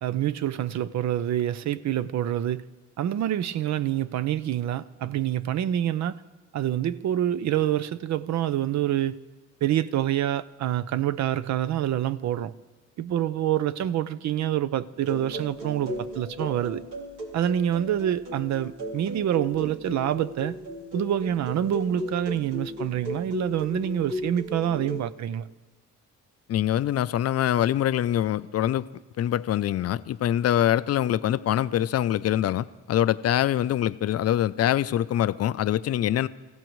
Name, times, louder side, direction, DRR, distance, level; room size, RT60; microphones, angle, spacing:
voice 1, 0.0-2.6 3.0-6.2 6.5-9.2 9.6-12.5 13.0-16.8 17.3-20.6 20.9-25.5, right 11 dB, 65° right, 0.6 m, -26 dB
sound 1, 15.0-25.0, equal, 90° right, 3.2 m, -36 dB
voice 2, 26.5-28.9 29.2-36.3, left 11 dB, 55° left, 0.5 m, -24 dB
28.0 x 15.5 x 3.1 m
cardioid pair, 90°, 30 cm